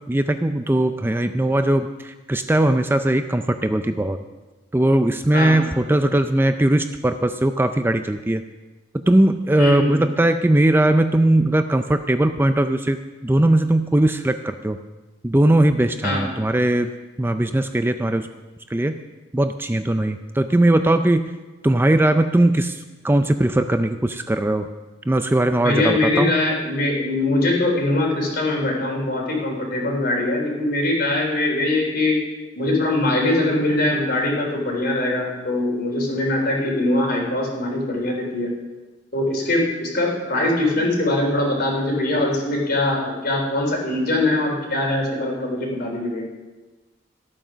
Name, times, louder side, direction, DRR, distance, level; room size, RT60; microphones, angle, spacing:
voice 1, 0.1-4.2 4.7-8.4 8.9-14.8 15.2-16.9 17.2-18.3 18.7-19.0 19.3-21.3 21.6-24.7 25.1-26.3, right 1 dB, 10° right, 8 dB, 0.4 m, -19 dB
voice 2, 5.3-5.6 9.6-10.0 16.0-16.3 25.5-32.2 32.6-38.5 39.1-46.3, left 2 dB, 55° left, 0 dB, 3.7 m, -22 dB
14.5 x 9.0 x 6.1 m, 1.2 s
head